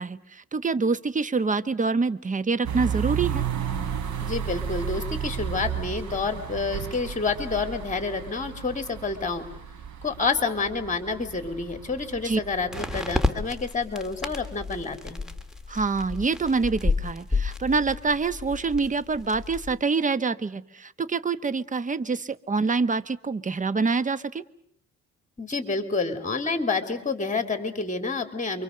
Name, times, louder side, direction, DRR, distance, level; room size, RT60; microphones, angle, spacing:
voice 1, 0.0-3.5 12.2-12.4 15.7-24.4, right 4 dB, 25° right, 16 dB, 1.1 m, -26 dB
sound 1, 2.6-13.1, right 8 dB, 70° right, 3.4 m, -33 dB
voice 2, 4.2-9.5 10.0-15.3 25.4-28.6, left 4 dB, 25° left, 9 dB, 3.4 m, -29 dB
sound 2, 12.7-19.8, left 3 dB, ahead, 2.5 m, -31 dB
28.0 x 24.5 x 6.7 m, 0.69 s
cardioid pair, 90°, 30 cm